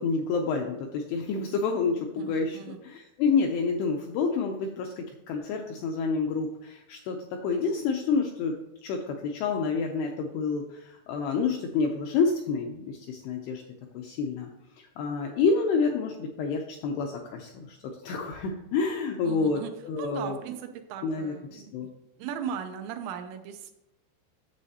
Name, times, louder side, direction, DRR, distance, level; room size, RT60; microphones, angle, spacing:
voice 1, 0.0-13.6 13.9-14.5 14.8-20.4 21.0-21.9, left 4 dB, 85° left, 2 dB, 2.3 m, -29 dB
voice 2, 2.2-2.8 19.2-19.7 20.0-21.9 22.2-23.7, right 8 dB, 80° right, 6 dB, 2.7 m, -38 dB
9.7 x 7.0 x 2.8 m, 0.87 s
omnidirectional pair, 5.3 m